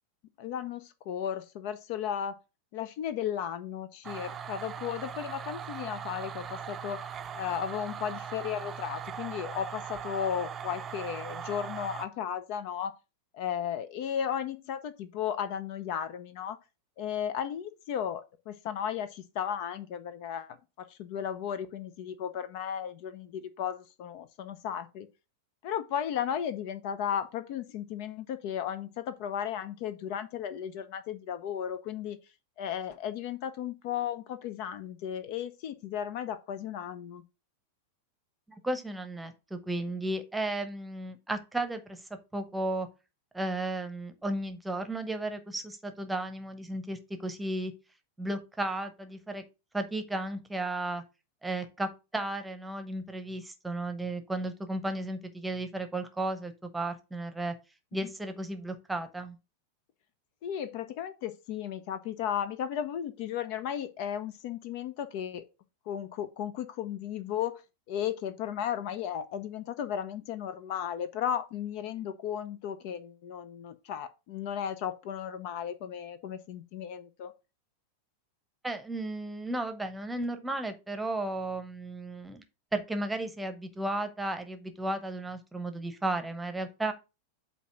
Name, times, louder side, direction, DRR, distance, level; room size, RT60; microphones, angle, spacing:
voice 1, 0.4-2.3 2.7-7.0 7.3-12.9 13.3-16.6 17.0-25.1 25.6-32.2 32.6-37.2 60.4-65.4 65.9-67.6 67.9-77.3, left 9 dB, 45° left, 0.6 m, -35 dB
sound 1, 4.0-12.1, right 7 dB, 25° right, 0.6 m, -40 dB
voice 2, 38.6-42.0 42.3-42.9 43.3-47.7 48.2-49.4 49.7-51.0 51.4-57.5 57.9-59.4 78.6-82.4 82.7-86.9, right 2 dB, 5° right, 1.0 m, -34 dB
8.2 x 2.9 x 5.6 m
figure-of-eight pair, 90°, 0 cm